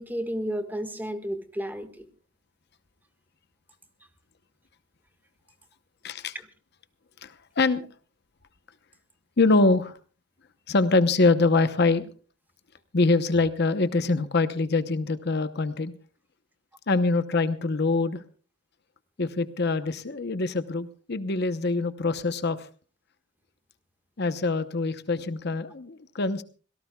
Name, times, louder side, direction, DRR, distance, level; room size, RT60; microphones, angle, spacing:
voice 1, 0.0-2.1 6.3-6.5, equal, 10° right, 1.6 m, -32 dB
voice 2, 6.0-6.3 7.2-7.9 9.4-10.0 10.7-12.1 12.9-15.9 16.9-18.2 19.2-22.6 24.2-26.4, left 3 dB, 55° left, 0.9 m, -24 dB
26.5 x 17.5 x 2.3 m
head